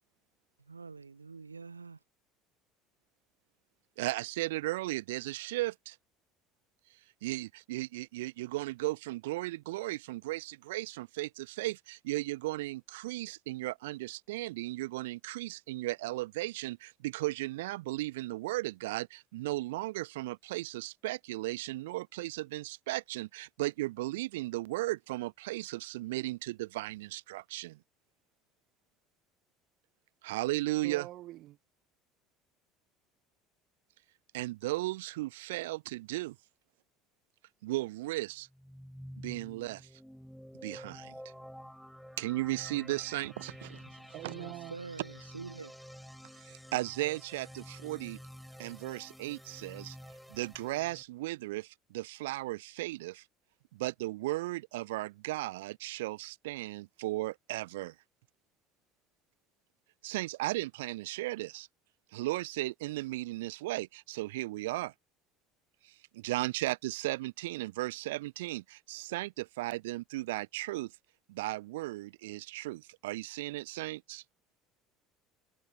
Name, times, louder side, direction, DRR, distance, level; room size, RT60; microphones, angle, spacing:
voice 1, 0.6-2.0 44.3-45.7, right 4 dB, 80° right, 1.3 m, -46 dB
voice 2, 4.0-6.0 7.2-27.8 30.2-31.1 34.3-36.3 37.6-38.5 39.2-39.9 40.6-41.1 42.2-43.8 46.4-48.2 48.6-50.0 50.3-53.2 53.7-57.9 60.0-61.7 62.1-64.9 65.8-70.9 71.3-74.2, right 18 dB, 65° right, 1.2 m, -36 dB
voice 3, 30.8-31.6 44.1-44.8, right 15 dB, 50° right, 0.7 m, -44 dB
sound 1, 38.5-51.0, equal, ahead, 5.5 m, -50 dB
figure-of-eight pair, 65°, 0 cm